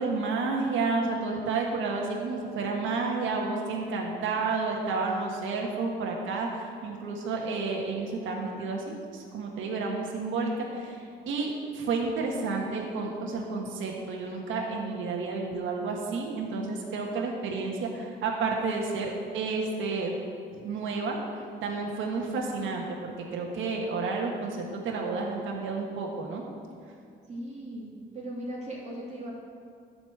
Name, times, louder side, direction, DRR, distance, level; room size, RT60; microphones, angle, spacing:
voice 1, 0.0-20.1 20.5-21.2 21.6-26.4, right 4 dB, 80° right, -1 dB, 1.5 m, -31 dB
voice 2, 27.3-27.9 28.1-29.3, right 1 dB, 35° right, -5 dB, 2.7 m, -38 dB
11.5 x 5.3 x 7.8 m, 2.3 s
cardioid pair, 90°, 20 cm